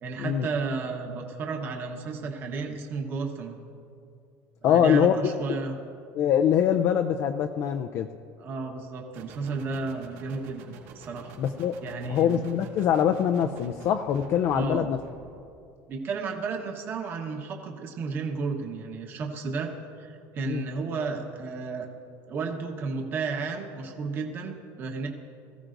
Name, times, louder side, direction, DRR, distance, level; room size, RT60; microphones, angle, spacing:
voice 1, 0.0-3.6 4.6-5.8 8.4-11.3 11.8-12.4 14.5-14.9 15.9-19.7 20.0-21.9 22.3-25.1, right 4 dB, 30° right, 2 dB, 1.1 m, -33 dB
voice 2, 4.6-5.6 6.1-8.1 11.4-11.7 12.1-15.0 20.4-20.7, left 9 dB, 40° left, 6 dB, 0.4 m, -24 dB
sound 1, 9.1-15.5, right 4 dB, 85° right, 2.6 m, -48 dB
22.0 x 15.0 x 2.6 m, 2.4 s
cardioid pair, 175°, 7 cm